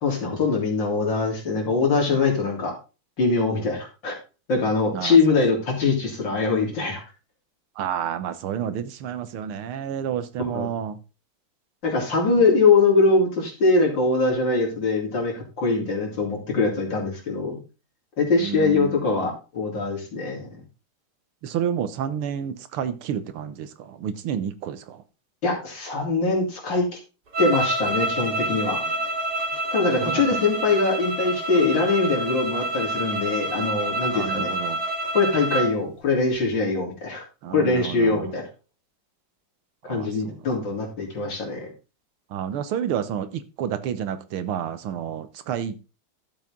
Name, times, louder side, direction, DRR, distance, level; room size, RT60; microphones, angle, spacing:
voice 1, 0.0-2.7 3.2-4.2 4.5-7.0 10.4-10.7 11.8-17.6 18.2-20.5 25.4-26.9 27.4-28.8 29.7-34.5 35.1-37.2 37.5-38.4 39.9-41.7, left 3 dB, 60° left, 4.1 m, -22 dB
voice 2, 7.8-11.0 18.4-19.0 21.4-23.7 24.0-25.0 30.0-30.2 34.1-34.8 37.4-38.2 39.9-40.1 42.3-43.3 43.6-45.9, right 9 dB, 90° right, 1.9 m, -29 dB
sound 1, 27.3-35.7, right 1 dB, 50° right, 3.8 m, -28 dB
12.0 x 7.5 x 3.7 m
omnidirectional pair, 2.3 m